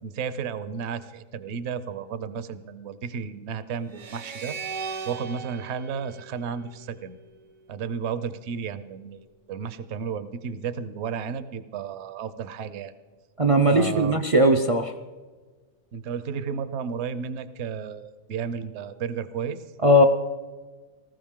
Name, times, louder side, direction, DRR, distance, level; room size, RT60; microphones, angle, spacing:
voice 1, 0.0-4.6 5.0-7.2 7.7-12.9 13.7-14.2 15.9-19.6, right 6 dB, 60° right, 13 dB, 0.9 m, -33 dB
sound 1, 3.9-7.2, right 5 dB, 80° right, 1.5 m, -38 dB
voice 2, 13.4-14.9 19.8-20.0, equal, 45° right, 6 dB, 0.4 m, -18 dB
19.0 x 15.0 x 3.7 m, 1.4 s
omnidirectional pair, 1.4 m